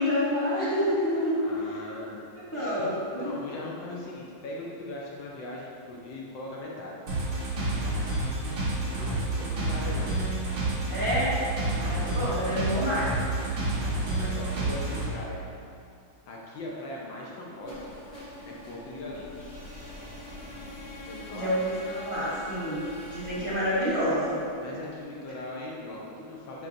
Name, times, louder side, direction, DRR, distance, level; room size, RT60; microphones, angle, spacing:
voice 1, 0.0-1.4 1.7-1.8 2.3-3.4 10.9-11.4 11.7-13.1 21.3-24.4, equal, 25° right, -11 dB, 1.6 m, -28 dB
voice 2, 1.4-2.2 2.6-7.0 8.9-10.2 11.9-12.2 14.1-15.4 16.3-17.9 18.4-19.5 21.0-21.5 23.3-23.5 24.5-26.7, left 1 dB, 70° left, -4 dB, 1.4 m, -40 dB
sound 1, 7.1-15.1, right 2 dB, 60° right, 2.1 m, -29 dB
sound 2, 17.6-25.5, left 1 dB, 50° left, 2.2 m, -44 dB
9.5 x 4.4 x 2.6 m, 2.5 s
omnidirectional pair, 2.3 m